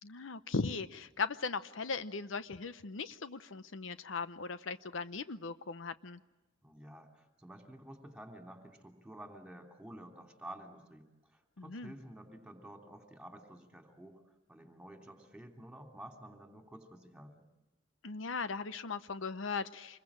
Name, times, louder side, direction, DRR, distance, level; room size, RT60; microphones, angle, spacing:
voice 1, 0.0-6.2 11.6-11.9 18.0-20.0, left 4 dB, 75° left, 13 dB, 0.8 m, -38 dB
voice 2, 6.6-14.2 14.5-17.5, right 1 dB, 5° right, 4 dB, 3.0 m, -51 dB
26.5 x 22.0 x 8.6 m, 1.0 s
head